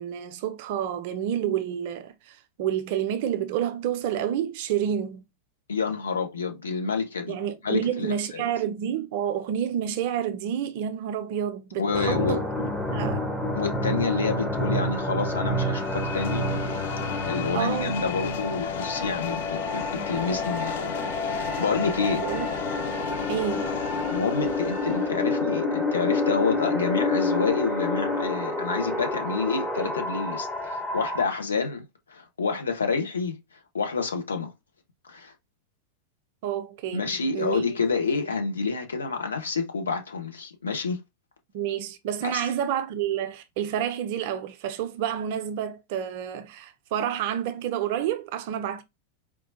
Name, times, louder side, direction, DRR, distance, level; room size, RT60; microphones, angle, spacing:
voice 1, 0.0-5.2 7.3-13.3 17.5-18.1 20.0-20.1 22.0-22.5 23.3-23.8 36.4-37.6 41.5-48.8, right 9 dB, 50° right, 0.5 m, -29 dB
voice 2, 5.7-7.4 7.6-8.4 11.8-12.4 13.5-16.5 17.2-20.9 21.3-22.2 24.1-33.4 33.7-34.5 35.0-35.3 36.9-41.0 42.2-42.5, left 4 dB, 70° left, 0.8 m, -28 dB
sound 1, 11.9-31.2, left 2 dB, 5° left, 0.8 m, -29 dB
sound 2, 15.5-25.4, left 11 dB, 55° left, 0.3 m, -35 dB
4.5 x 2.3 x 2.7 m
figure-of-eight pair, 90°, 0 cm